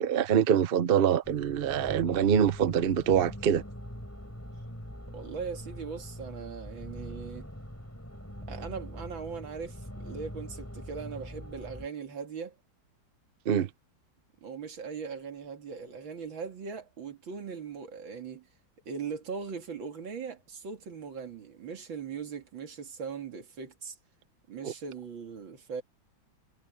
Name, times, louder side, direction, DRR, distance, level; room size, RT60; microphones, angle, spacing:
voice 1, 0.0-3.6 13.5-13.7 24.6-24.7, right 8 dB, 55° right, 0.6 m, -25 dB
sound 1, 1.2-11.9, equal, 5° left, 5.4 m, -43 dB
voice 2, 5.1-7.5 8.4-12.5 14.4-18.5 18.9-24.0 24.5-25.8, right 6 dB, 90° right, 3.0 m, -39 dB
omnidirectional pair, 2.1 m